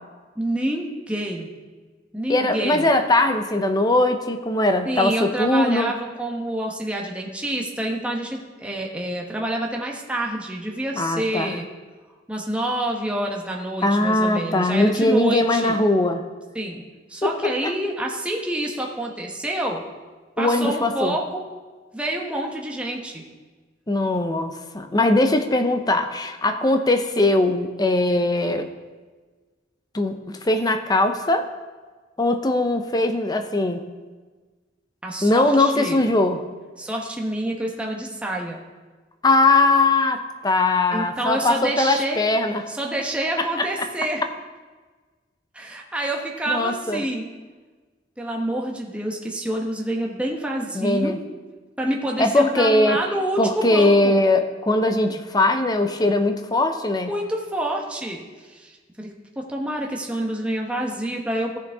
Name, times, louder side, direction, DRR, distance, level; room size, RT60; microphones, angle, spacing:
voice 1, 0.4-1.5 2.1-2.9 4.9-11.7 12.3-15.8 16.5-16.8 17.1-19.8 20.4-21.5 21.9-23.2 35.0-36.0 36.8-38.6 40.9-42.2 42.7-44.2 45.5-47.3 48.2-51.2 51.8-54.2 57.0-58.2 58.5-58.7 59.0-59.1 59.4-61.6, right 1 dB, 5° right, -1 dB, 1.0 m, -27 dB
voice 2, 2.3-5.9 11.0-11.6 13.8-16.2 17.2-17.7 20.4-21.2 23.9-28.7 29.9-31.5 32.2-33.8 35.2-36.4 39.2-42.6 43.4-43.5 46.5-47.0 50.7-51.2 52.2-53.0 53.4-57.1, left 2 dB, 20° left, 7 dB, 0.6 m, -20 dB
15.0 x 6.8 x 3.5 m, 1.4 s
head